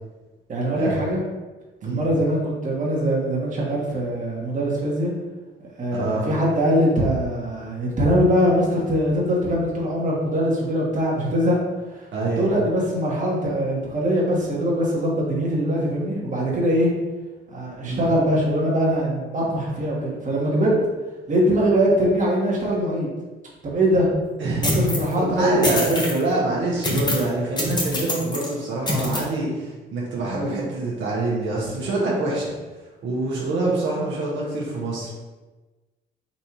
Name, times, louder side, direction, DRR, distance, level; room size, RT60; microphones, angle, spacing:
voice 1, 0.5-1.2 1.8-5.1 5.8-11.6 11.9-12.0 12.4-16.9 17.5-20.7 21.3-23.1 23.6-24.1 24.6-26.2, equal, 40° right, -4 dB, 1.4 m, -22 dB
voice 2, 5.9-6.3 12.1-12.5 17.8-18.0 24.4-24.7 25.2-32.5 33.0-35.2, right 2 dB, 70° right, -5 dB, 1.3 m, -25 dB
sound 1, 24.6-25.1 25.6-26.2 26.8-27.3 27.6-28.5 28.9-29.2, left 1 dB, 20° left, 1.1 m, -24 dB
4.2 x 2.7 x 4.6 m, 1.2 s
cardioid pair, 90°, 20 cm